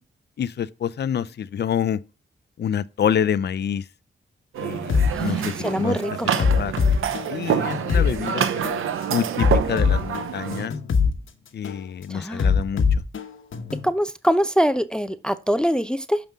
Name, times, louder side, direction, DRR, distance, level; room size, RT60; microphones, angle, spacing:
voice 1, 0.4-2.0 2.6-3.8 4.6-6.0 6.4-6.7 7.3-8.5 9.1-10.7 11.5-12.8, left 8 dB, 55° left, 0.5 m, -27 dB
sound 1, 4.5-10.7, right 8 dB, 90° right, 0.7 m, -27 dB
sound 2, 4.9-5.1 5.6-5.8 6.4-8.1 8.6-8.8 9.4-11.1 11.6-11.8 12.4-13.9, left 5 dB, 75° left, 1.1 m, -21 dB
voice 2, 5.1-6.3 12.1-12.5 13.8-16.2, equal, 5° left, 0.6 m, -24 dB
6.9 x 5.3 x 3.5 m
cardioid pair, 50°, 20 cm